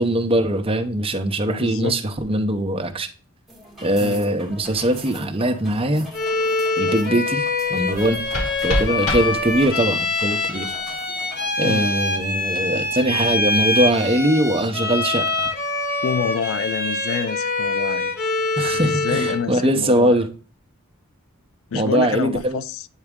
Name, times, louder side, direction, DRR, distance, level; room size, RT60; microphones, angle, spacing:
voice 1, 0.0-3.1 3.8-6.1 6.8-8.2 8.6-10.8 11.6-15.5 18.6-20.3 21.7-22.6, right 1 dB, 25° right, 0.7 m, -21 dB
voice 2, 1.5-2.0 4.0-4.2 11.6-11.9 16.0-18.2 18.8-20.2 21.7-22.9, left 6 dB, 65° left, 0.4 m, -27 dB
sound 1, 3.5-11.5, equal, ahead, 1.5 m, -42 dB
Bowed string instrument, 6.1-19.5, left 2 dB, 45° left, 1.2 m, -24 dB
sound 2, 7.9-9.9, equal, 90° left, 2.7 m, -28 dB
8.9 x 3.5 x 3.5 m
head